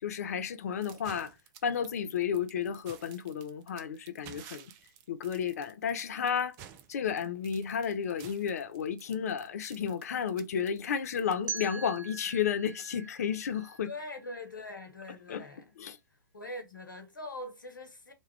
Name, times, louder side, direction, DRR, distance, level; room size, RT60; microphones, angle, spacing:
voice 1, 0.0-1.3 1.6-4.7 5.1-6.6 6.9-13.9 15.3-15.4 15.8-16.0, left 7 dB, 50° left, 0.5 m, -32 dB
sound 1, 0.8-12.0, right 9 dB, 25° right, 0.4 m, -52 dB
sound 2, 11.5-14.4, right 5 dB, 65° right, 1.0 m, -42 dB
voice 2, 13.8-15.7 16.3-18.1, left 1 dB, 75° left, 1.1 m, -42 dB
3.0 x 2.3 x 3.3 m
figure-of-eight pair, 115°, 11 cm